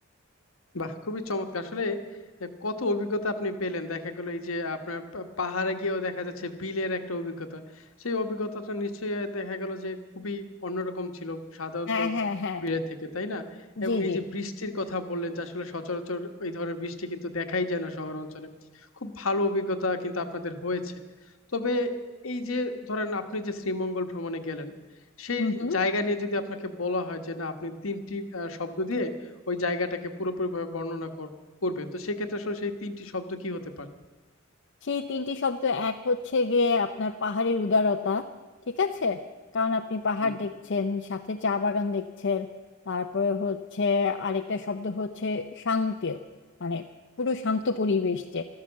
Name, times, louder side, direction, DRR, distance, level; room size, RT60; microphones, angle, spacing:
voice 1, 0.7-2.0 2.4-12.1 12.6-13.5 13.8-18.5 19.0-20.9 21.5-21.9 22.2-24.7 25.2-29.1 29.5-31.3 31.6-33.9 40.2-40.4, left 2 dB, 75° left, 7 dB, 1.3 m, -31 dB
voice 2, 11.9-12.6 13.8-14.2 25.4-25.8 34.8-38.2 38.8-39.2 39.5-42.5 42.9-46.2 46.6-46.8 47.2-48.4, left 4 dB, 60° left, 5 dB, 0.6 m, -27 dB
13.5 x 13.0 x 7.3 m, 1.3 s
head